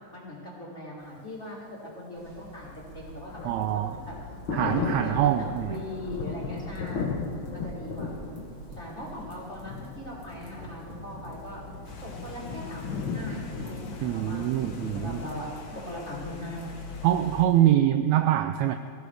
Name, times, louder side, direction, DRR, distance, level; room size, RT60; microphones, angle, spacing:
voice 1, 0.1-1.6 1.9-4.1 4.5-5.3 5.7-7.2 7.5-8.2 8.7-11.6 12.0-15.5 15.8-17.1, left 1 dB, 20° left, -6 dB, 3.9 m, -40 dB
sound 1, 2.2-17.7, right 1 dB, 50° right, 3.2 m, -47 dB
Thunder, 2.6-15.4, left 4 dB, 55° left, 1.6 m, -37 dB
voice 2, 3.4-4.0 4.5-5.8 14.0-15.2 17.0-18.8, right 12 dB, 85° right, 8 dB, 1.6 m, -24 dB
sound 2, 11.8-17.4, left 5 dB, 70° left, 0.9 m, -44 dB
22.5 x 15.5 x 3.5 m, 2.6 s
omnidirectional pair, 3.7 m